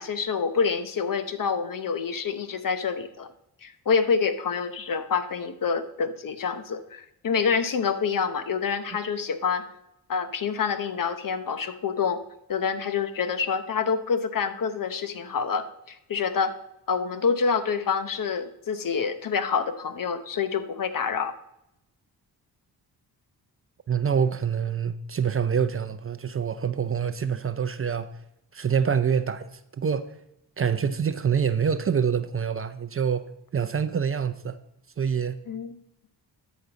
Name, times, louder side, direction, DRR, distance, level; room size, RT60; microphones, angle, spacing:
voice 1, 0.0-3.3 3.6-9.6 10.1-12.2 12.5-16.5 16.9-21.3 35.5-35.8, left 6 dB, 50° left, 0.9 m, -27 dB
voice 2, 23.9-28.1 28.5-30.2 30.6-33.3 33.5-34.6 35.0-35.4, right 7 dB, 35° right, 0.5 m, -26 dB
13.0 x 5.2 x 4.0 m
cardioid pair, 60°, 42 cm